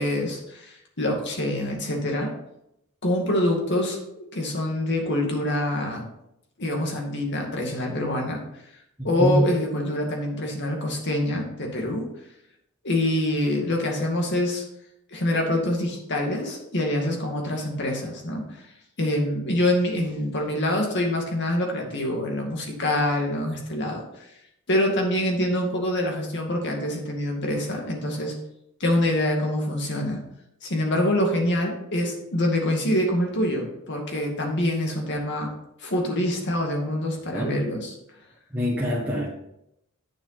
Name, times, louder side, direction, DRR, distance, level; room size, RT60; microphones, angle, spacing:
voice 1, 0.0-2.3 3.0-6.1 6.6-8.4 9.0-12.1 12.8-14.6 15.1-18.6 19.0-24.3 24.7-28.3 28.8-30.2 30.6-35.5 35.8-38.0, left 1 dB, 55° left, 1 dB, 2.2 m, -25 dB
voice 2, 9.0-9.5 37.3-37.6 38.5-39.3, equal, 10° right, -5 dB, 1.6 m, -24 dB
9.0 x 7.1 x 4.1 m, 0.81 s
head